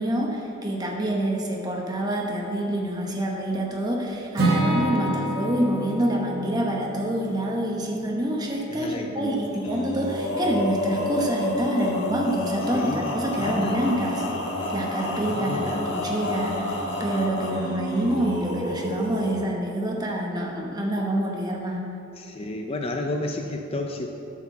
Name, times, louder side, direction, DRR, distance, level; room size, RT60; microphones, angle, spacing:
voice 1, 0.0-14.2 14.7-16.7 17.0-21.8, right 1 dB, 20° right, -1 dB, 1.0 m, -27 dB
Acoustic guitar / Strum, 4.4-8.4, right 1 dB, 55° right, 1.6 m, -28 dB
voice 2, 8.7-10.3 12.7-13.9 15.3-16.0 22.2-24.1, left 2 dB, 30° left, 3 dB, 0.4 m, -33 dB
Male singing, 9.6-19.4, left 1 dB, 65° left, 1.5 m, -29 dB
8.0 x 4.7 x 6.8 m, 2.9 s
head